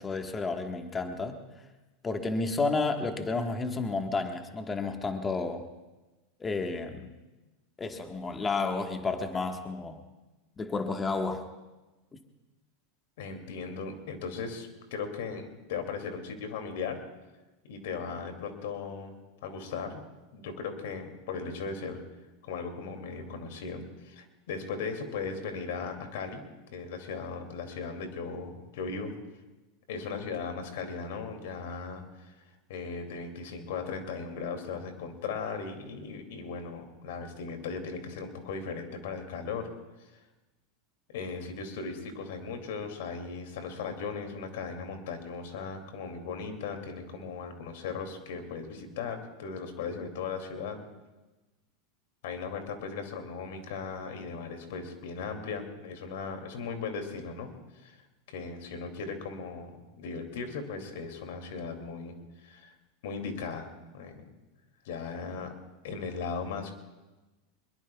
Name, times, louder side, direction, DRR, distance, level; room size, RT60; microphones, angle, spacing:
voice 1, 0.0-1.4 2.0-5.7 6.4-7.1 7.8-10.0 10.6-11.5 12.1-12.2, left 3 dB, 20° left, 5 dB, 1.4 m, -31 dB
voice 2, 13.2-17.0 17.6-22.0 22.4-26.4 26.7-29.1 29.9-32.3 32.7-39.7 40.0-40.1 41.1-50.8 52.2-57.5 57.7-58.0 58.3-62.1 62.4-62.7 63.0-64.3 64.8-65.5 65.8-66.7, left 5 dB, 70° left, 5 dB, 2.6 m, -37 dB
23.5 x 21.5 x 2.3 m, 1.1 s
hypercardioid pair, 95°, 0 cm